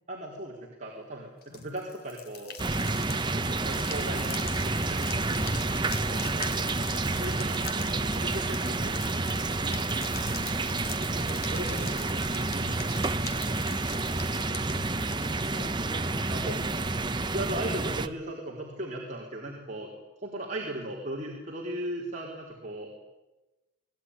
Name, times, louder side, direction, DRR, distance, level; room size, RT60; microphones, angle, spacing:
voice 1, 0.1-2.6 3.3-6.7 7.2-8.9 11.1-12.7 13.3-13.6 16.3-16.6 17.3-19.9 20.2-22.9, right 1 dB, 40° right, -3 dB, 4.1 m, -38 dB
sound 1, 1.4-15.6, left 6 dB, 50° left, 3.1 m, -43 dB
voice 2, 1.5-1.9 7.5-8.5 14.1-16.6 17.4-18.1, left 1 dB, 35° left, 4 dB, 3.7 m, -46 dB
sound 2, 2.6-18.1, right 2 dB, 25° right, 1.0 m, -29 dB
26.5 x 19.5 x 9.9 m, 1.1 s
head